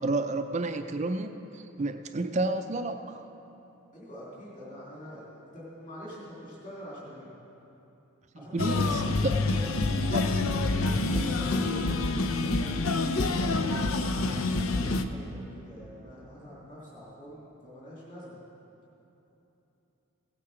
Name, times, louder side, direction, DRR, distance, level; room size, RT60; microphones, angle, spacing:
voice 1, 0.0-3.2 8.5-9.4 10.1-10.2, right 2 dB, 35° right, 7 dB, 0.4 m, -30 dB
voice 2, 3.9-7.3 8.3-8.9 9.4-10.2 10.8-12.9 13.2-18.4, equal, 35° left, -7 dB, 3.0 m, -45 dB
sound 1, 8.6-15.0, left 2 dB, 70° left, 0.6 m, -27 dB
16.5 x 8.8 x 4.9 m, 3.0 s
head